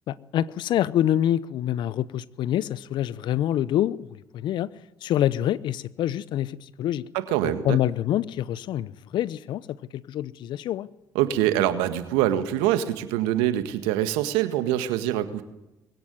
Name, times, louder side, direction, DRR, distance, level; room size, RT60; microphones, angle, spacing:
voice 1, 0.1-4.7 5.0-7.0 7.6-9.6 9.9-10.9, left 12 dB, 60° left, 0.8 m, -26 dB
voice 2, 7.1-7.8 11.2-15.4, right 12 dB, 75° right, 1.7 m, -24 dB
21.5 x 17.0 x 9.5 m
hypercardioid pair, 60°, 9 cm